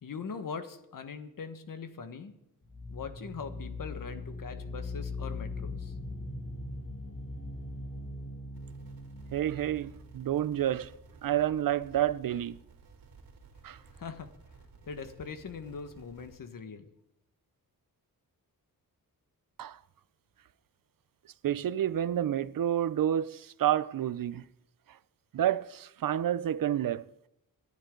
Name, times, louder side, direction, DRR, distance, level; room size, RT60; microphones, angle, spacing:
voice 1, 0.0-2.3 2.9-5.9 13.9-14.3 14.8-16.9, left 5 dB, 65° left, 1.6 m, -41 dB
sound 1, 2.6-11.3, left 2 dB, 45° left, 3.0 m, -40 dB
sound 2, 8.5-16.4, right 4 dB, 85° right, 2.6 m, -55 dB
voice 2, 9.3-10.9 11.2-12.6 13.6-13.8 19.6-19.8 21.4-24.4 25.3-27.1, right 11 dB, 65° right, 0.6 m, -29 dB
27.5 x 11.5 x 3.9 m
wide cardioid pair, 125°, 36 cm